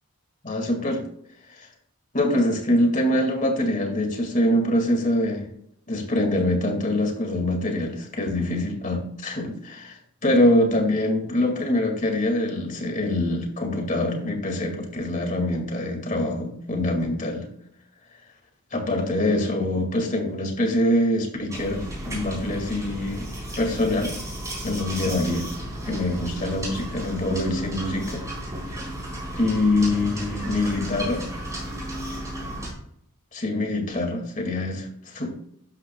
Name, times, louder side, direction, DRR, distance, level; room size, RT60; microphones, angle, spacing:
voice 1, 0.4-1.0 2.1-5.5 5.9-17.5 18.7-23.3 23.6-24.1 24.6-25.5 25.9-28.2 29.3-31.2 32.5-32.6 33.3-34.9 35.1-35.3, left 1 dB, 35° left, 3 dB, 2.2 m, -24 dB
sound 1, 21.5-32.7, right 1 dB, 15° right, 4.2 m, -34 dB
12.5 x 9.7 x 2.3 m, 0.72 s
head